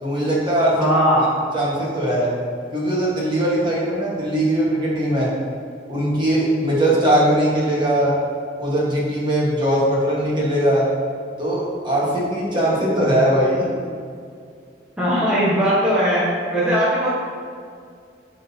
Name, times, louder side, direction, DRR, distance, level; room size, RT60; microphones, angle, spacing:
voice 1, 0.0-0.9 1.5-2.3 2.7-5.3 5.9-8.1 8.6-10.9 11.4-13.9, right 1 dB, 25° right, -6 dB, 1.4 m, -20 dB
voice 2, 0.8-1.3 15.0-16.3 16.5-17.1, equal, 5° right, -10 dB, 1.1 m, -19 dB
11.5 x 3.8 x 2.8 m, 2.2 s
head